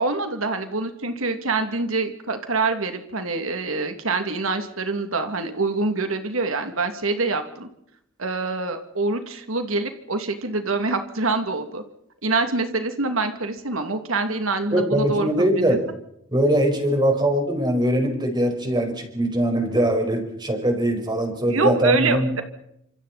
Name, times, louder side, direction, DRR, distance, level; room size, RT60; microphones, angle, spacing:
voice 1, 0.0-7.7 8.2-11.8 12.2-15.3 15.7-15.8 21.5-22.4, right 3 dB, 90° right, 6 dB, 2.6 m, -25 dB
voice 2, 14.7-15.9 16.3-22.3, right 1 dB, 20° right, 4 dB, 5.1 m, -22 dB
29.5 x 26.5 x 4.3 m, 0.76 s
head